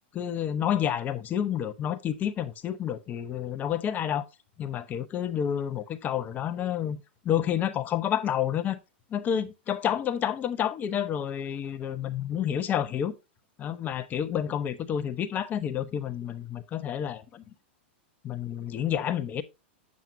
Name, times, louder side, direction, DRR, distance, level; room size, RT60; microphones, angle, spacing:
voice 1, 0.1-4.2 4.6-8.8 9.1-13.1 13.6-17.4 18.2-19.4, left 9 dB, 30° left, 0.9 m, -29 dB
8.2 x 7.5 x 2.6 m
hypercardioid pair, 120°, 6 cm